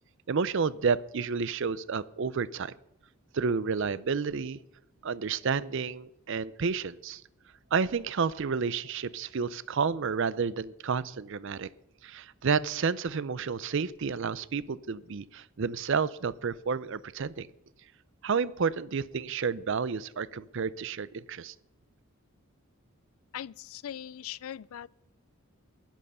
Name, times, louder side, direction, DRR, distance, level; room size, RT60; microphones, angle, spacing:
voice 1, 0.3-2.7 3.3-4.6 5.0-7.2 7.7-11.7 12.0-17.5 18.2-21.5, right 5 dB, 60° right, 0.5 m, -30 dB
voice 2, 23.3-24.9, left 10 dB, 75° left, 0.4 m, -40 dB
12.0 x 11.0 x 5.6 m
head